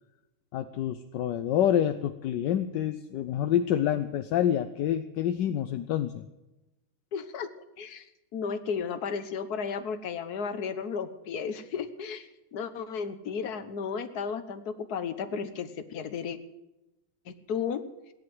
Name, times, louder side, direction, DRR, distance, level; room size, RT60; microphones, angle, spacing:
voice 1, 0.5-6.2, left 10 dB, 70° left, 10 dB, 1.2 m, -27 dB
voice 2, 7.1-7.5 7.8-8.1 8.3-16.4 17.3-17.8, left 6 dB, 50° left, 10 dB, 1.5 m, -34 dB
17.0 x 11.0 x 7.8 m, 0.97 s
omnidirectional pair, 2.3 m